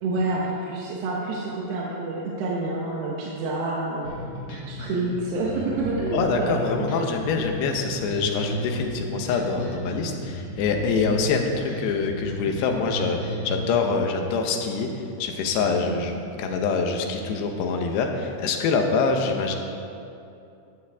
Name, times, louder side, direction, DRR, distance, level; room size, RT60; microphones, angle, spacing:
voice 1, 0.0-4.1 4.7-6.9 7.4-7.5 15.9-16.2, right 2 dB, 75° right, -4 dB, 3.1 m, -28 dB
sound 1, 4.0-13.6, equal, 40° left, 3.2 m, -35 dB
voice 2, 6.1-19.6, left 4 dB, 80° left, 3 dB, 3.1 m, -25 dB
13.5 x 12.5 x 3.5 m, 2.7 s
omnidirectional pair, 4.8 m